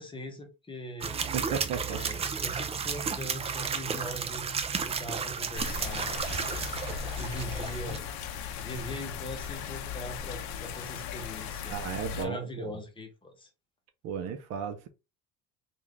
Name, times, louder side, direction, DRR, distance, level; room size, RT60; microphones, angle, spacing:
voice 1, 0.0-1.2 1.9-4.5 4.9-6.1 7.1-8.0 8.6-11.8 12.1-13.5, left 1 dB, 15° left, 0.9 m, -41 dB
sound 1, 1.0-8.0, right 6 dB, 20° right, 0.4 m, -33 dB
voice 2, 1.3-2.0 11.7-12.7 14.0-14.9, right 7 dB, 60° right, 0.7 m, -34 dB
sound 2, 5.6-12.3, left 8 dB, 70° left, 0.7 m, -37 dB
3.6 x 2.5 x 3.0 m
cardioid pair, 125°, 29 cm